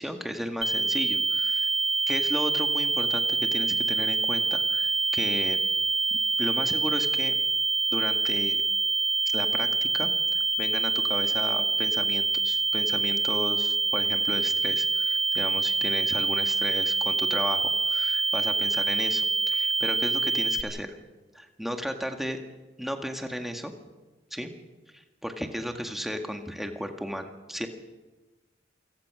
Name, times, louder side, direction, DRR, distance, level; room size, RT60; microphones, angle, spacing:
voice 1, 0.0-1.7 2.1-3.2 3.5-5.6 6.1-7.3 7.9-8.6 9.3-10.1 10.6-20.9 21.3-22.4 22.8-23.7 24.3-24.5 24.9-27.7, equal, ahead, 4 dB, 1.9 m, -34 dB
sound 1, 0.6-20.6, right 3 dB, 30° right, 1.2 m, -26 dB
28.0 x 17.5 x 6.3 m, 1.2 s
head